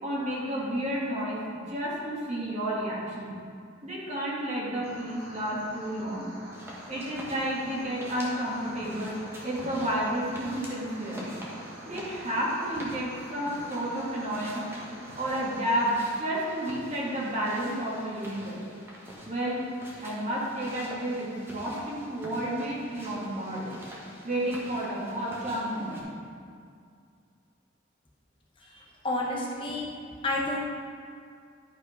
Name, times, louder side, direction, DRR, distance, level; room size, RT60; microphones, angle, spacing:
voice 1, 0.0-3.3 3.8-6.3 6.9-11.3 11.8-14.6 15.2-18.6 19.3-19.6 20.0-23.7 24.2-26.1, right 1 dB, 35° right, -5 dB, 2.1 m, -31 dB
sound 1, 4.8-15.9, equal, 55° right, 2.5 m, -47 dB
sound 2, 6.5-26.0, equal, 10° right, 1.4 m, -46 dB
voice 2, 28.6-29.9 30.2-30.6, left 2 dB, 25° left, -3 dB, 0.8 m, -30 dB
11.0 x 5.1 x 5.2 m, 2.3 s
head